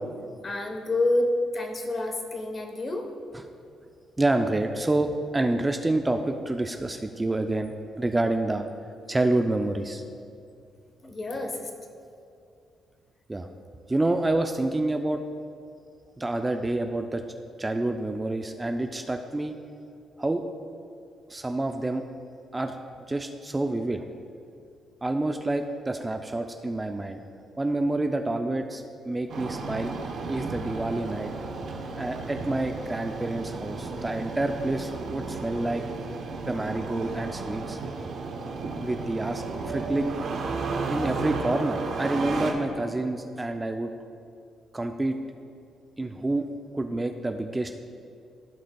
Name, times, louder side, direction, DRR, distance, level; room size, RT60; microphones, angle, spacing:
voice 1, 0.4-3.1 11.0-11.7, left 2 dB, 35° left, 3 dB, 1.0 m, -28 dB
voice 2, 4.2-8.6 9.1-10.0 13.3-13.5 13.9-15.2 16.2-17.2 17.6-19.5 20.2-20.4 21.3-22.0 22.5-22.7 23.1-24.0 25.0-27.2 27.6-29.9 30.3-31.3 31.9-35.8 36.5-37.8 38.8-40.1 40.9-43.9 44.7-45.2 46.0-46.5 46.7-47.9, right 2 dB, 15° right, 6 dB, 0.4 m, -28 dB
Engine starting, 29.3-42.5, right 3 dB, 65° right, 0.9 m, -33 dB
15.0 x 5.2 x 2.3 m, 2.4 s
cardioid pair, 90°, 0 cm